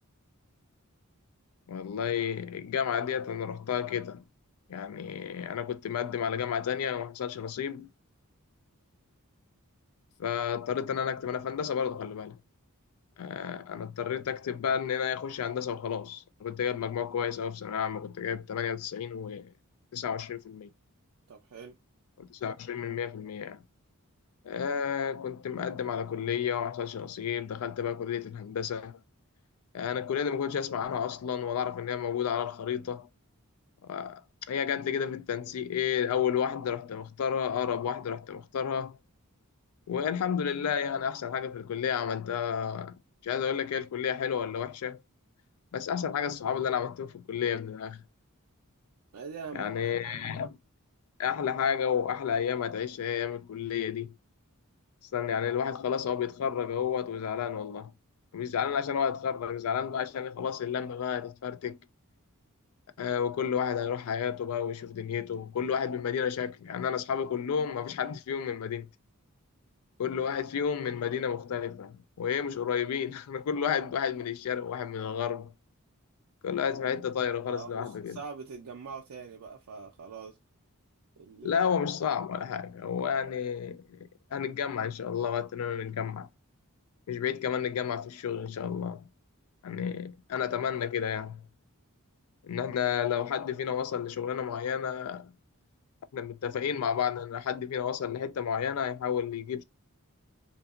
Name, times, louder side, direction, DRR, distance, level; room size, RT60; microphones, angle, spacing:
voice 1, 1.7-4.2 4.7-7.9 10.2-12.4 13.2-19.5 19.9-20.7 22.2-23.6 24.4-29.0 29.7-33.1 33.8-34.2 34.5-39.0 39.9-45.0 45.7-48.0 49.5-50.6 51.2-54.1 55.1-57.9 58.3-61.8 63.0-68.9 70.0-75.5 76.4-78.2 81.4-86.3 87.1-89.0 89.6-91.5 92.4-95.3 96.1-99.6, left 7 dB, 70° left, 0.4 m, -31 dB
voice 2, 21.3-21.8 49.1-50.5 70.2-70.4 77.5-80.4 81.2-81.7, right 5 dB, 90° right, 0.4 m, -43 dB
2.7 x 2.3 x 2.4 m
head